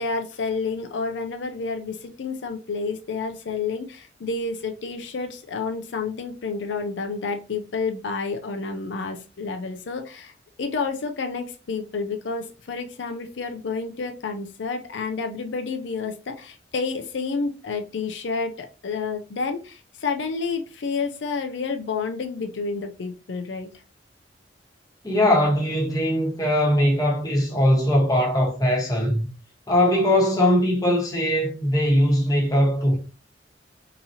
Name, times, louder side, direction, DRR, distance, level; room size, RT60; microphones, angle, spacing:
voice 1, 0.0-10.3 10.6-23.7, left 4 dB, 80° left, 0.5 m, -30 dB
voice 2, 25.0-29.3 29.7-33.0, left 1 dB, 20° left, 1.2 m, -20 dB
4.0 x 2.8 x 2.7 m
head